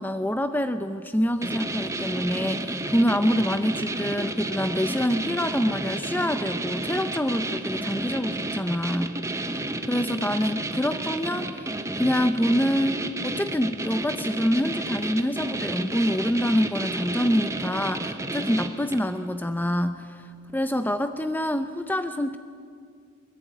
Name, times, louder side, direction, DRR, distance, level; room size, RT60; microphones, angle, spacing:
voice 1, 0.0-20.2 20.5-22.4, equal, 10° left, 9 dB, 0.7 m, -26 dB
sound 1, 1.4-19.1, right 2 dB, 15° right, 1.1 m, -31 dB
23.5 x 21.5 x 9.3 m, 2.3 s
head